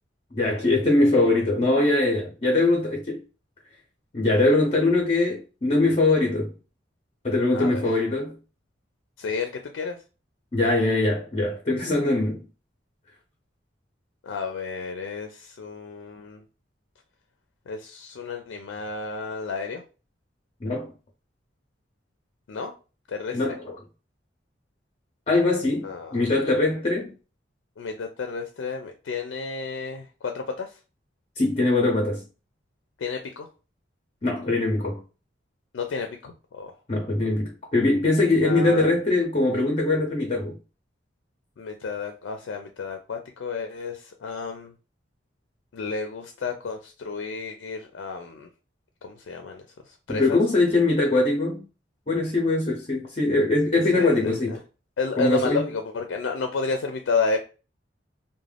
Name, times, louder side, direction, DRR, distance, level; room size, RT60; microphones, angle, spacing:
voice 1, 0.3-3.2 4.1-6.5 7.2-8.4 10.5-12.5 20.6-20.9 23.3-23.8 25.3-27.1 31.4-32.2 34.2-35.0 36.9-40.6 50.1-51.6 52.1-54.6 55.2-55.7, left 2 dB, 35° left, 0.5 m, -22 dB
voice 2, 9.2-10.0 14.2-16.4 17.7-19.8 22.5-22.7 23.1-23.6 25.8-26.2 27.8-30.8 33.0-33.5 35.7-36.7 38.4-38.9 41.6-44.7 45.7-48.5 49.0-49.6 50.1-50.4 53.9-54.6 55.0-57.4, left 4 dB, 90° left, 0.4 m, -31 dB
2.4 x 2.1 x 3.2 m
head